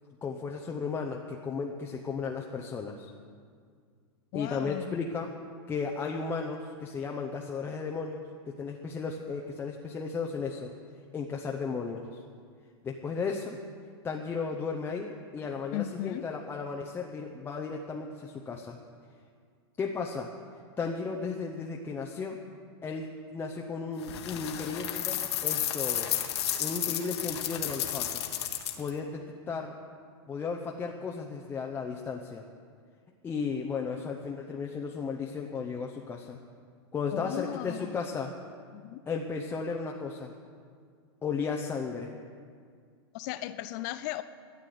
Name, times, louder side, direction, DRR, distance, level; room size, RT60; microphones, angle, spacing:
voice 1, 0.2-3.1 4.3-5.3 5.7-10.7 11.1-12.2 12.8-13.6 14.0-18.8 19.8-20.3 20.8-22.4 22.8-26.2 26.6-28.2 28.8-29.8 30.3-32.4 33.2-36.4 36.9-38.3 39.1-40.3 41.2-42.1, left 5 dB, 15° left, 1 dB, 0.7 m, -35 dB
voice 2, 4.3-5.0 15.7-16.3 37.1-38.0 38.7-39.0 43.1-44.2, left 14 dB, 45° left, 12 dB, 0.4 m, -36 dB
sound 1, 24.0-28.9, left 11 dB, 75° left, 1.5 m, -32 dB
13.0 x 8.3 x 9.4 m, 2.1 s
supercardioid pair, 150°, 14 cm